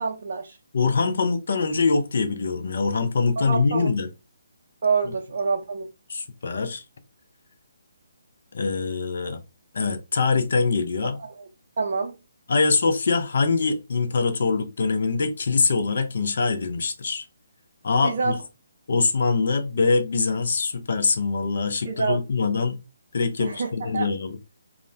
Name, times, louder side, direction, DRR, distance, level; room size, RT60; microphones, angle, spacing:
voice 1, 0.0-0.6 3.4-3.9 4.8-5.9 11.0-11.3 11.8-12.1 18.0-18.4 21.9-22.2 23.4-24.1, right 5 dB, 55° right, 0.5 m, -27 dB
voice 2, 0.7-4.1 5.1-5.2 6.1-6.8 8.5-9.4 9.7-11.2 12.5-17.2 17.8-18.3 18.9-22.8 23.1-24.4, left 4 dB, 60° left, 0.5 m, -23 dB
2.4 x 2.1 x 3.2 m
figure-of-eight pair, 145°, 0 cm